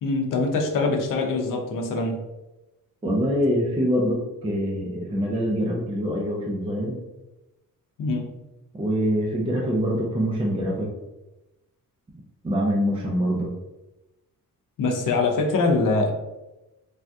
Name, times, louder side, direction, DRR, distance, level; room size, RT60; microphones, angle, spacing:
voice 1, 0.0-2.2 8.0-8.3 14.8-16.1, left 3 dB, 65° left, 2 dB, 0.6 m, -23 dB
voice 2, 3.0-7.0 8.7-10.9 12.4-13.5, equal, 15° right, -1 dB, 0.3 m, -24 dB
3.4 x 2.6 x 2.3 m, 1.0 s
wide cardioid pair, 150°, 34 cm